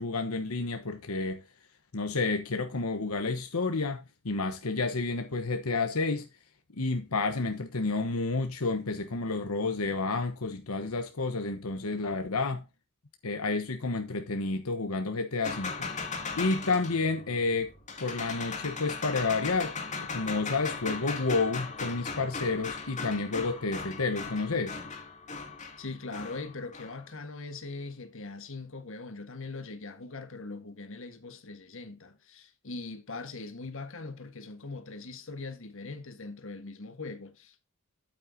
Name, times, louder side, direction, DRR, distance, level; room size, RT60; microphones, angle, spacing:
voice 1, 0.0-1.4 1.9-6.3 6.7-12.6 13.2-15.7 16.4-17.7 18.0-24.8, left 3 dB, 90° left, 1.2 m, -30 dB
sound 1, 15.4-27.0, left 4 dB, 35° left, 2.5 m, -38 dB
voice 2, 25.8-37.6, left 3 dB, 65° left, 1.6 m, -41 dB
8.8 x 8.8 x 2.8 m
head